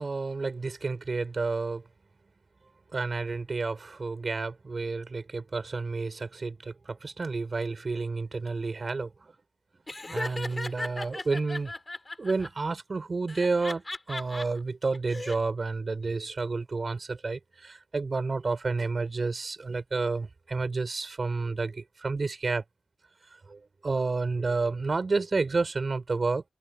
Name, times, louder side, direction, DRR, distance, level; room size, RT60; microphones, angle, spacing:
voice 1, 0.0-1.8 2.9-9.1 10.1-11.7 12.2-22.6 23.5-26.4, right 3 dB, 45° right, 5.3 m, -30 dB
Laughter, 9.9-12.5 13.3-14.4 14.9-15.4, left 2 dB, 25° left, 5.9 m, -36 dB
wide cardioid pair, 80°, 0 cm